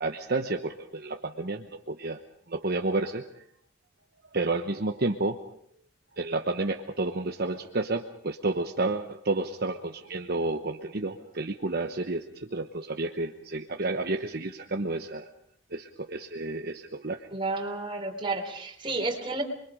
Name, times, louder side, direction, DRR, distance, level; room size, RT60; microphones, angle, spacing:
voice 1, 0.0-2.2 2.5-3.4 4.3-5.4 6.2-15.3 15.7-17.3, right 2 dB, 55° right, 4 dB, 1.1 m, -31 dB
voice 2, 17.3-19.4, right 3 dB, 25° right, 2 dB, 3.8 m, -31 dB
29.0 x 22.5 x 5.1 m, 0.68 s
head